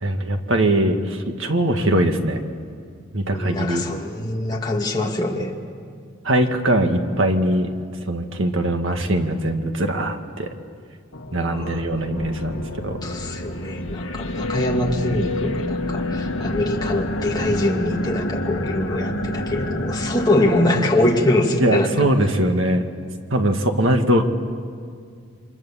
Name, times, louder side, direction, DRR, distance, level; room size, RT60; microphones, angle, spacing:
voice 1, 0.0-2.4 3.1-3.8 6.2-7.7 8.1-10.5 11.3-13.0 21.6-22.8 23.3-24.2, right 1 dB, 65° right, 5 dB, 2.0 m, -21 dB
voice 2, 3.3-5.5 11.5-11.8 13.0-22.1, left 1 dB, 20° left, -1 dB, 2.5 m, -23 dB
sound 1, 11.1-21.6, left 1 dB, 70° left, 1.7 m, -28 dB
29.5 x 25.0 x 7.5 m, 2.1 s
head